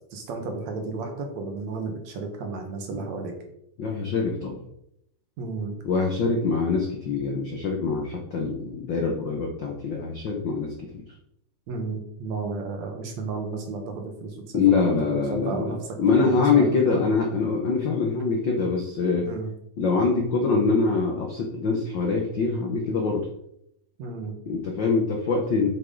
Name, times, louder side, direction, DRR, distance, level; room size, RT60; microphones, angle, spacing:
voice 1, 0.1-3.3 5.4-5.8 11.7-15.8 16.3-17.0 19.2-19.5 24.0-24.3, right 4 dB, 65° right, 3 dB, 2.4 m, -33 dB
voice 2, 3.8-4.6 5.8-11.0 14.5-15.7 16.0-19.3 19.8-23.3 24.5-25.7, left 4 dB, 80° left, 1 dB, 1.0 m, -24 dB
7.8 x 7.4 x 3.9 m, 0.76 s
omnidirectional pair, 3.7 m